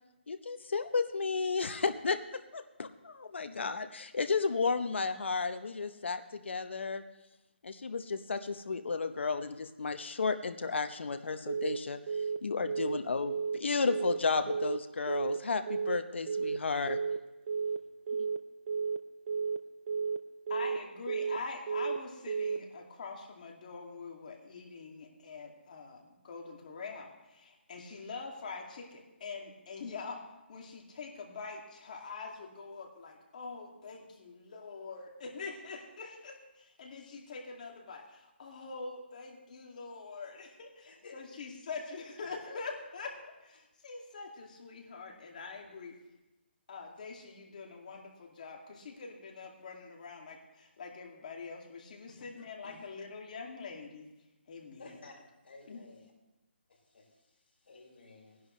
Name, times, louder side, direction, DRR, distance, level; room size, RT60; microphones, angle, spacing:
voice 1, 0.3-7.0 7.6-12.0 12.4-17.0, left 4 dB, 80° left, 8 dB, 0.9 m, -33 dB
Telephone, 11.5-11.8 12.1-12.4 12.7-13.0 13.3-13.6 13.9-14.2 14.5-14.8 15.1-15.4 15.7-16.0 16.3-16.6 16.9-17.2 17.5-17.8 18.1-18.4 18.7-19.0 19.3-19.6 19.9-20.2 20.5-20.8 21.1-21.4 21.7-22.0 22.3-22.6, right 5 dB, 35° right, 0.5 m, -32 dB
voice 2, 20.5-30.2 30.5-46.0 46.7-54.1 54.5-55.0 55.7-55.8, left 4 dB, 45° left, 0 dB, 2.3 m, -44 dB
voice 3, 40.9-41.2 52.2-52.3 52.6-52.8 54.8-55.1 55.4-56.1 56.7-57.1 57.6-58.4, left 3 dB, 60° left, -2 dB, 4.6 m, -53 dB
18.5 x 11.0 x 3.2 m, 1.0 s
hypercardioid pair, 165°, 6 cm